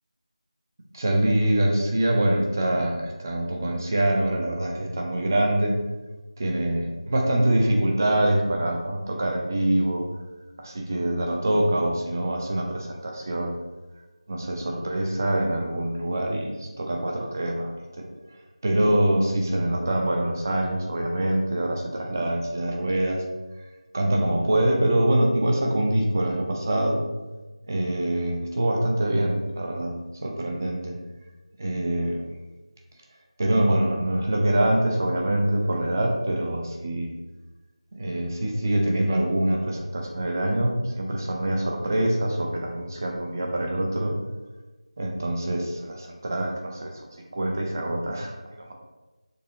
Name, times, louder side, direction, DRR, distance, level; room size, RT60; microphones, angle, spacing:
voice 1, 0.9-5.8 6.4-10.0 10.6-13.5 14.3-17.7 18.6-23.2 23.9-27.0 27.7-30.0 30.2-31.0 31.6-32.2 33.4-37.1 37.9-44.1 45.0-48.7, right 1 dB, 30° right, 1 dB, 0.6 m, -24 dB
6.6 x 2.8 x 2.8 m, 1.2 s
figure-of-eight pair, 165°, 3 cm